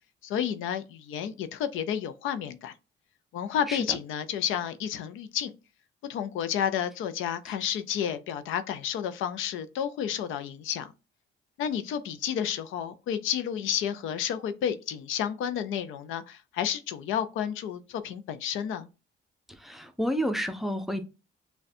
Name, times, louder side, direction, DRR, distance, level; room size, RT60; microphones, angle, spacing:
voice 1, 0.2-2.7 3.3-5.5 6.1-10.9 11.6-18.9, left 9 dB, 90° left, 0.5 m, -31 dB
voice 2, 3.7-4.0 19.6-21.1, equal, ahead, 0.6 m, -30 dB
6.4 x 2.2 x 2.6 m
cardioid pair, 90°, 20 cm